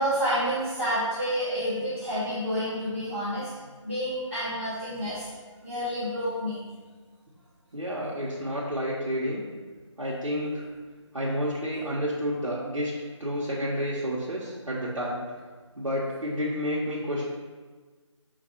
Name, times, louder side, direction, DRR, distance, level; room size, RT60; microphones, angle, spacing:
voice 1, 0.0-3.5 3.8-5.3 5.6-6.5, equal, 5° left, -21 dB, 1.0 m, -29 dB
voice 2, 7.7-9.4 10.0-10.7 11.1-12.9 13.2-15.2 15.8-17.2, equal, 85° right, -7 dB, 0.9 m, -30 dB
5.1 x 2.3 x 4.3 m, 1.4 s
figure-of-eight pair, 165°, 16 cm